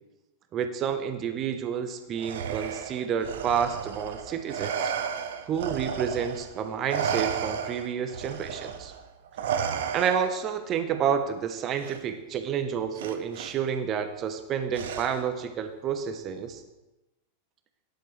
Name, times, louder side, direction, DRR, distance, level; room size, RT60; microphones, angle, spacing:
voice 1, 0.5-4.9 5.5-8.9 9.9-16.6, right 7 dB, 30° right, 8 dB, 1.1 m, -29 dB
Respiratory sounds, 2.2-6.5 6.9-10.5 11.8-12.0 13.0-13.5 14.7-15.4, right 7 dB, 55° right, 1.0 m, -33 dB
17.0 x 10.5 x 3.4 m, 1.0 s
figure-of-eight pair, 90°, 0 cm